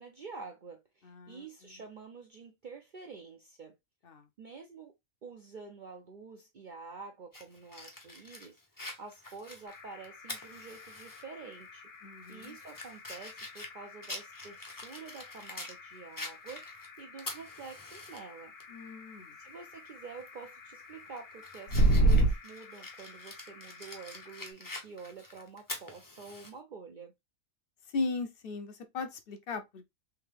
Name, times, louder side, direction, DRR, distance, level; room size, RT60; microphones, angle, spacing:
voice 1, 0.0-3.8 4.4-4.9 5.2-11.9 12.3-18.5 19.4-27.1, right 4 dB, 65° right, 0.5 m, -48 dB
voice 2, 1.0-1.4 4.0-4.3 12.0-12.6 18.7-19.4 27.9-29.9, left 3 dB, 55° left, 0.7 m, -37 dB
Fire, 7.3-11.2 11.6-11.7 12.2-15.8 16.2-18.2 18.6-18.7 20.2-20.4 20.9-26.5, left 2 dB, 20° left, 0.6 m, -45 dB
sound 1, 9.7-24.5, right 2 dB, 70° left, 1.3 m, -34 dB
3.5 x 2.7 x 3.2 m
omnidirectional pair, 1.4 m